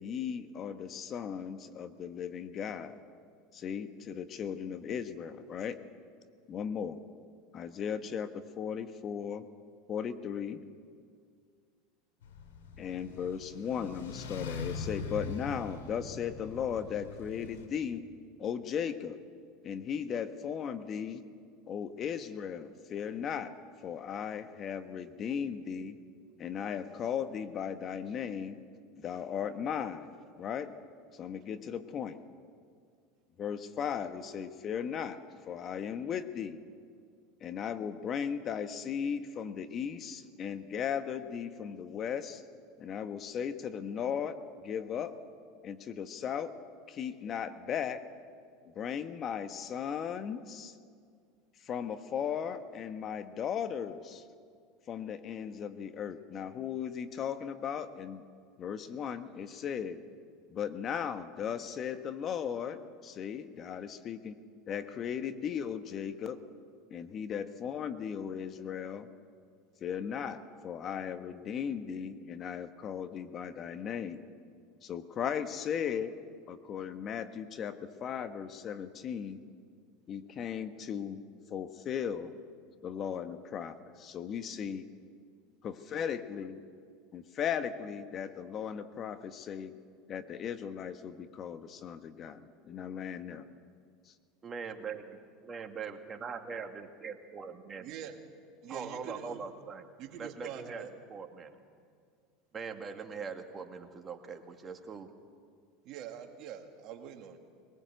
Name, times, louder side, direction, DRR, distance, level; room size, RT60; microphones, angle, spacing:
voice 1, 0.0-3.0 3.5-5.9 6.5-7.0 7.5-9.5 9.9-10.6 12.8-18.1 18.4-19.2 19.6-21.2 21.7-23.6 23.8-26.0 26.4-28.6 29.0-30.7 31.1-32.2 33.4-36.6 37.4-42.4 42.8-45.2 45.6-46.6 46.9-48.1 48.7-50.8 51.6-54.2 54.9-58.2 58.6-60.0 60.5-64.4 64.7-66.5 66.9-69.1 69.8-74.2 74.8-76.2 76.5-79.4 80.1-81.2 81.5-82.3 82.8-84.8 85.6-86.6 87.1-89.8 90.1-93.4, left 8 dB, 40° left, 1.2 m, -37 dB
sound 1, 12.2-17.7, left 4 dB, 85° left, 2.5 m, -42 dB
voice 2, 94.4-95.2 95.5-97.9 98.7-99.9 100.2-100.8 101.1-101.6 102.5-105.1, right 5 dB, 30° right, 2.1 m, -41 dB
voice 3, 97.8-98.2 98.6-99.4 100.0-100.9 105.8-107.4, right 9 dB, 55° right, 2.2 m, -44 dB
21.0 x 19.5 x 8.0 m
hypercardioid pair, 90°, 0 cm